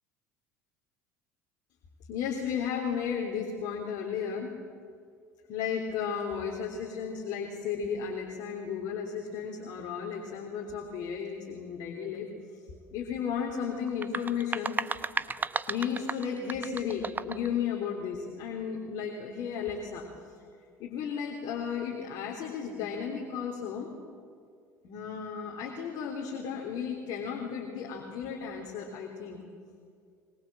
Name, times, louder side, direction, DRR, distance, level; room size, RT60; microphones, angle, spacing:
voice 1, 2.1-4.5 5.5-12.3 12.9-14.8 15.7-20.1 20.8-23.9 24.8-29.4, left 7 dB, 60° left, 1 dB, 3.5 m, -34 dB
sound 1, 13.9-17.5, right 4 dB, 20° right, 1.0 m, -34 dB
23.0 x 23.0 x 7.7 m, 2.2 s
hypercardioid pair, 70°, 9 cm